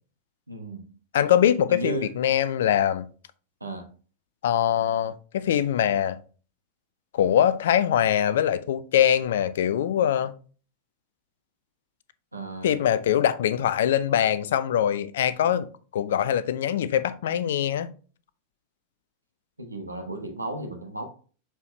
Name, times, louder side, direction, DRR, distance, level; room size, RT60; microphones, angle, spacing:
voice 1, 0.5-0.8 1.7-2.1 3.6-3.9 12.3-12.8 19.6-21.0, right 2 dB, 85° right, 1.2 m, -34 dB
voice 2, 1.1-3.1 4.4-6.2 7.1-10.3 12.6-15.7 15.9-17.9, left 10 dB, 60° left, 0.5 m, -23 dB
6.8 x 4.4 x 3.2 m
figure-of-eight pair, 90°, 0 cm